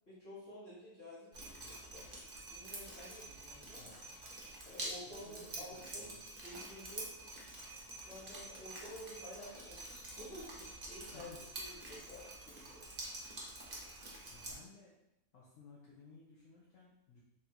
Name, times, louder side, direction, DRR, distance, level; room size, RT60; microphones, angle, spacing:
voice 1, 0.1-2.1 2.5-4.1 4.6-7.1 8.0-11.3 11.6-12.8, equal, 45° left, -10 dB, 1.3 m, -52 dB
Drip, 1.3-14.5, right 1 dB, 35° right, 0.8 m, -47 dB
voice 2, 3.8-4.2 5.1-6.3 11.1-11.4 14.3-15.0 15.3-17.2, left 4 dB, 65° left, -5 dB, 1.0 m, -58 dB
3.6 x 2.6 x 4.3 m, 0.87 s
omnidirectional pair, 1.6 m